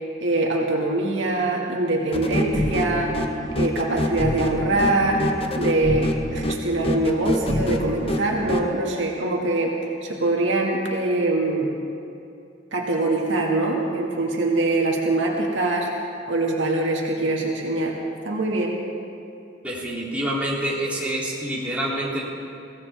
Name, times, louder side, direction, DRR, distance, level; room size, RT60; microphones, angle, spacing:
voice 1, 0.2-3.1 3.5-5.3 5.6-9.7 10.0-11.7 12.7-15.9 16.3-18.0 18.3-18.8, right 2 dB, 80° right, -1 dB, 2.2 m, -23 dB
sound 1, 2.1-8.7, left 1 dB, 30° left, 1.0 m, -26 dB
voice 2, 19.6-22.2, right 1 dB, 10° right, -7 dB, 3.4 m, -27 dB
23.5 x 17.0 x 3.7 m, 2.6 s
head